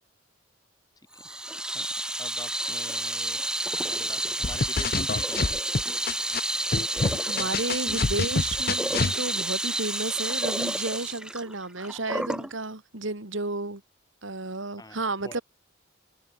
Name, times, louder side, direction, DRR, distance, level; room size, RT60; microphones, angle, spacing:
Water tap faucet / Sink (filling or washing), 1.2-12.5, right 1 dB, 5° right, 0.9 m, -30 dB
voice 1, 2.2-3.4 3.9-5.5 7.3-7.7 14.8-15.4, left 2 dB, 20° left, 3.5 m, -44 dB
sound 1, 4.4-6.4 6.7-9.1, left 4 dB, 50° left, 0.6 m, -27 dB
voice 2, 6.7-13.8 14.2-15.4, right 2 dB, 70° right, 2.7 m, -32 dB
head